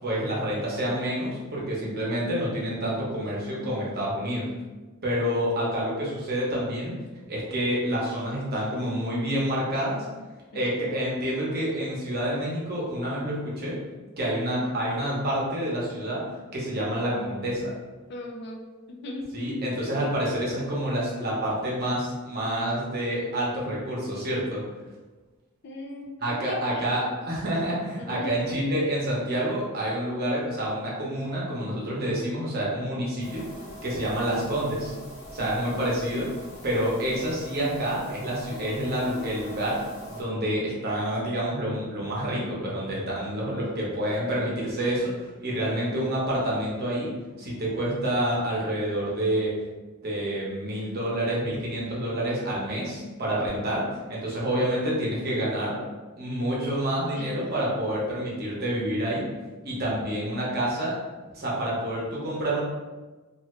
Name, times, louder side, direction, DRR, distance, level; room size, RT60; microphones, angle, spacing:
voice 1, 0.0-4.5 5.0-6.9 7.3-10.1 10.5-13.8 14.2-16.2 16.5-17.7 19.3-24.6 26.2-33.4 33.8-34.9 35.3-36.3 36.6-39.8 40.1-45.1 45.4-47.1 47.4-49.5 50.0-55.8 56.2-59.2 59.6-61.0 61.3-62.6, right 1 dB, 45° right, -5 dB, 0.9 m, -28 dB
voice 2, 10.5-10.9 18.1-19.3 25.6-26.9 28.0-28.3 35.4-35.5 57.1-57.4 57.7-57.9, left 1 dB, 55° left, 0 dB, 0.5 m, -38 dB
sound 1, 33.2-40.2, equal, 80° left, 1.1 m, -43 dB
2.7 x 2.6 x 3.1 m, 1.3 s
head